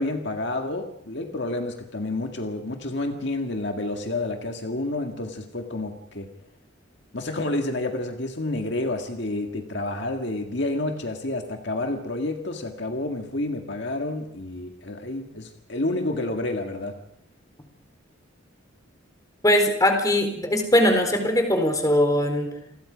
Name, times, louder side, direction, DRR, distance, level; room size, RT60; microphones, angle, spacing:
voice 1, 0.0-6.3 7.1-17.0, left 2 dB, 60° left, 4 dB, 1.9 m, -29 dB
voice 2, 19.4-22.5, left 1 dB, 15° left, 5 dB, 4.1 m, -20 dB
29.5 x 21.5 x 5.1 m, 0.76 s
head